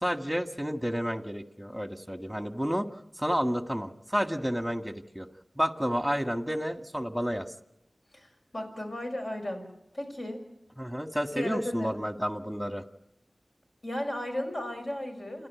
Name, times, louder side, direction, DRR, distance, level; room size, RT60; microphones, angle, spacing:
voice 1, 0.0-2.9 3.2-5.3 5.6-7.5 10.8-12.8, equal, ahead, 6 dB, 1.9 m, -30 dB
voice 2, 8.5-9.7 9.9-10.4 11.3-12.0 13.8-15.5, left 1 dB, 65° left, 2 dB, 6.4 m, -34 dB
29.5 x 12.0 x 9.5 m, 0.85 s
wide cardioid pair, 40°, 0 cm